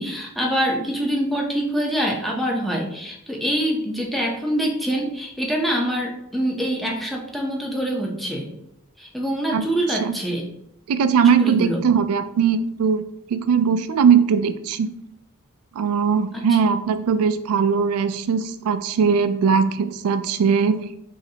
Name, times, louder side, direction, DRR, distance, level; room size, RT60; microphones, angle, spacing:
voice 1, 0.0-8.5 9.0-10.4 11.4-11.8 16.3-16.4, equal, ahead, -1 dB, 0.6 m, -25 dB
voice 2, 9.5-10.2 10.9-13.0 13.3-14.9 15.7-20.9, right 6 dB, 75° right, 11 dB, 0.3 m, -20 dB
3.9 x 3.1 x 2.8 m, 0.80 s
head